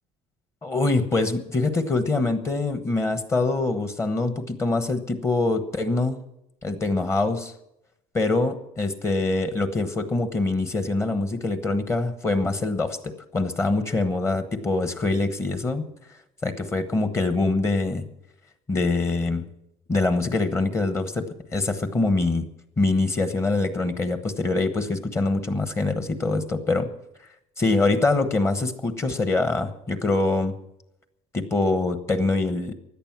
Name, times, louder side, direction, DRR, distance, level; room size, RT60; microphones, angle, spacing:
voice 1, 0.6-6.2 6.6-7.5 8.1-15.8 16.4-18.1 18.7-19.4 19.9-22.5 22.8-26.9 27.6-30.5 31.3-32.7, left 3 dB, 20° left, 9 dB, 1.1 m, -24 dB
16.5 x 11.0 x 6.0 m, 0.82 s
cardioid pair, 165°, 13 cm